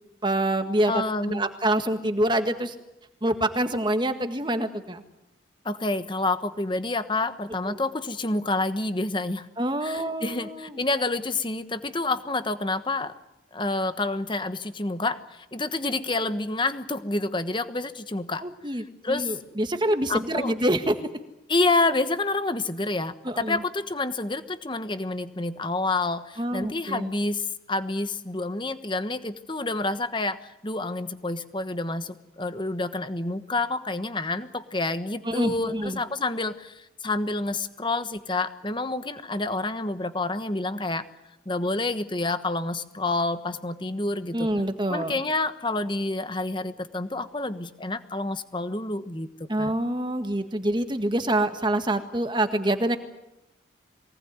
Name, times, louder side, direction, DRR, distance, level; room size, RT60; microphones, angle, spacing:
voice 1, 0.2-2.7 3.2-5.0 7.7-7.8 9.6-10.8 18.4-21.0 23.2-23.6 26.4-27.1 35.2-36.0 44.3-45.1 49.5-53.0, right 1 dB, 25° right, 8 dB, 1.7 m, -26 dB
voice 2, 0.9-1.5 5.6-9.5 9.8-13.1 13.5-18.4 19.0-19.4 20.1-20.5 21.5-41.1 41.5-44.5 44.9-49.3 49.6-49.7, left 2 dB, 25° left, 11 dB, 1.2 m, -28 dB
23.5 x 18.5 x 9.6 m, 0.92 s
head